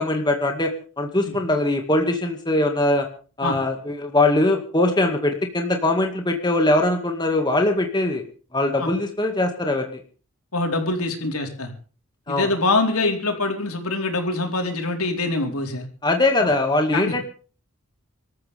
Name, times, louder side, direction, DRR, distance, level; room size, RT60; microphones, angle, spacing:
voice 1, 0.0-3.1 3.4-8.2 8.5-10.0 12.3-12.5 16.0-17.2, left 2 dB, 20° left, 3 dB, 2.2 m, -21 dB
voice 2, 10.5-11.7 12.3-15.9 16.4-16.5 16.9-17.1, left 2 dB, 90° left, 2 dB, 4.4 m, -24 dB
26.5 x 13.5 x 3.6 m, 0.39 s
head